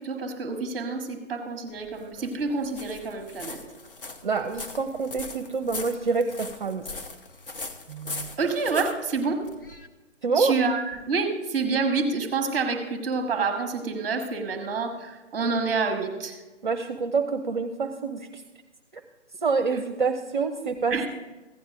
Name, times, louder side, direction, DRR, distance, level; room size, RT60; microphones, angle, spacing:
voice 1, 0.0-3.6 7.9-9.5 10.3-16.4 20.9-21.1, right 4 dB, 15° right, 5 dB, 1.1 m, -28 dB
sound 1, 1.7-9.9, left 3 dB, 50° left, 1.0 m, -40 dB
voice 2, 4.2-6.8 10.2-10.5 16.6-18.4 19.4-21.1, right 4 dB, 40° right, 7 dB, 0.6 m, -26 dB
15.5 x 9.3 x 2.5 m, 1.2 s
figure-of-eight pair, 145°, 36 cm